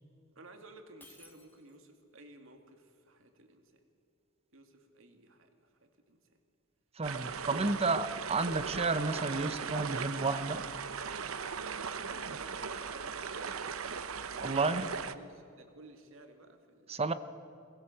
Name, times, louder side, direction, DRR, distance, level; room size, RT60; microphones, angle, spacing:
voice 1, 0.4-3.8 4.5-6.2 11.9-13.8 14.2-17.0, right 2 dB, 70° right, 5 dB, 2.4 m, -55 dB
Shatter, 1.0-2.0, left 3 dB, 10° left, 2.0 m, -58 dB
voice 2, 7.0-10.6 14.4-14.9 16.9-17.1, right 3 dB, 30° right, 12 dB, 0.8 m, -31 dB
sound 1, 7.0-15.1, right 6 dB, 90° right, 0.9 m, -38 dB
23.0 x 19.0 x 7.8 m, 2.4 s
head